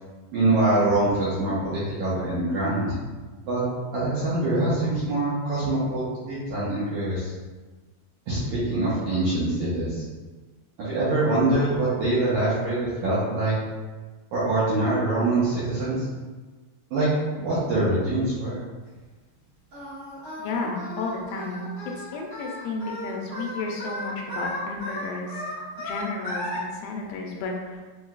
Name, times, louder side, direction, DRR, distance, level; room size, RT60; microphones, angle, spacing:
voice 1, 0.3-2.9 3.5-3.6 3.9-7.3 8.3-10.0 10.8-13.5 14.3-16.0 16.9-17.1 17.4-18.6, right 2 dB, 75° right, -10 dB, 1.8 m, -24 dB
Singing, 19.7-26.6, left 1 dB, 60° right, 0.9 m, -35 dB
voice 2, 20.4-21.7 22.0-25.4 25.8-27.8, left 3 dB, 80° left, 0 dB, 2.2 m, -32 dB
6.4 x 2.7 x 2.3 m, 1.3 s
omnidirectional pair, 4.3 m